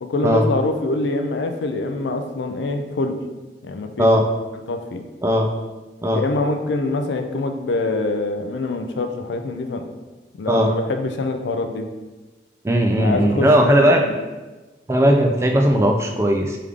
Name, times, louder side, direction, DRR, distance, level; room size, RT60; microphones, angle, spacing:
voice 1, 0.0-3.2 3.6-4.1 4.7-5.0 6.1-9.8 10.4-11.9 12.9-14.1, left 2 dB, 85° left, 6 dB, 0.4 m, -25 dB
voice 2, 12.6-14.0 14.9-16.6, equal, 15° right, 2 dB, 0.3 m, -17 dB
3.5 x 3.4 x 3.4 m, 1.2 s
head